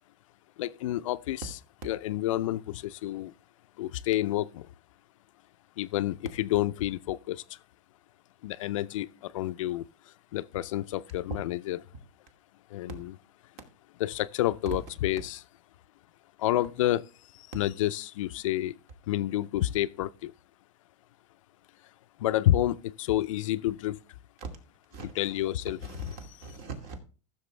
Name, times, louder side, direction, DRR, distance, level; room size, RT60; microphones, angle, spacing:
voice 1, 0.6-1.6 1.8-3.3 3.8-4.7 5.8-7.4 8.4-9.8 10.3-11.8 12.7-13.2 14.0-15.4 16.4-17.0 17.5-18.7 19.1-20.3 22.2-24.0 25.0-25.8, left 14 dB, 80° left, 0.6 m, -29 dB
voice 2, 24.9-25.3 25.8-27.0, right 4 dB, 50° right, 2.4 m, -43 dB
15.0 x 6.6 x 3.3 m
supercardioid pair, 135°, 16 cm